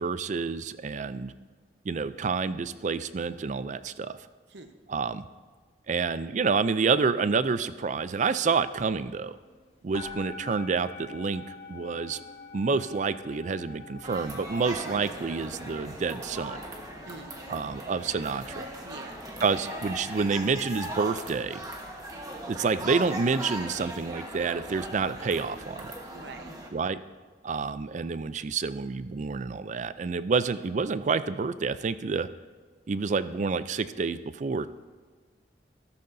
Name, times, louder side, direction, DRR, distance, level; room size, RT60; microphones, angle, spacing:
voice 1, 0.0-1.3 1.9-4.1 4.9-5.2 5.9-9.4 9.8-12.2 12.5-16.6 17.5-18.7 19.4-21.6 22.5-25.9 26.7-27.0 27.4-32.3 32.9-34.7, right 5 dB, 45° right, 14 dB, 0.4 m, -28 dB
sound 1, 8.1-8.2 8.5-9.6 9.9-18.8, left 4 dB, 35° left, 1.7 m, -47 dB
sound 2, 14.0-26.7, right 1 dB, 20° right, 1.3 m, -39 dB
voice 2, 17.1-17.7 18.8-19.2 26.1-26.6, right 3 dB, 75° right, 7 dB, 0.9 m, -46 dB
14.5 x 13.0 x 2.7 m, 1.4 s
head